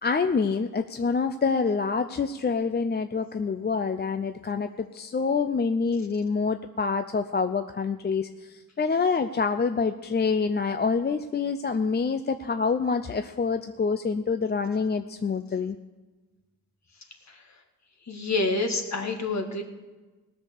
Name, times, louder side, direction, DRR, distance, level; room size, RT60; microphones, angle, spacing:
voice 1, 0.0-15.8, left 5 dB, 30° left, 8 dB, 0.5 m, -26 dB
voice 2, 18.1-19.6, left 3 dB, 45° left, 4 dB, 1.9 m, -27 dB
18.5 x 6.6 x 6.9 m, 1.2 s
cardioid pair, 95°, 37 cm